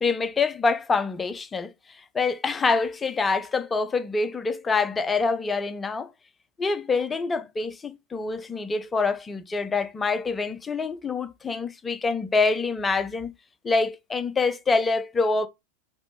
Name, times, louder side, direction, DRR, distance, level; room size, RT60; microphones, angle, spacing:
voice 1, 0.0-1.7 2.1-6.1 6.6-13.3 13.6-15.5, left 4 dB, 15° left, 0.6 m, -25 dB
6.0 x 3.1 x 5.5 m
figure-of-eight pair, 90°, 0 cm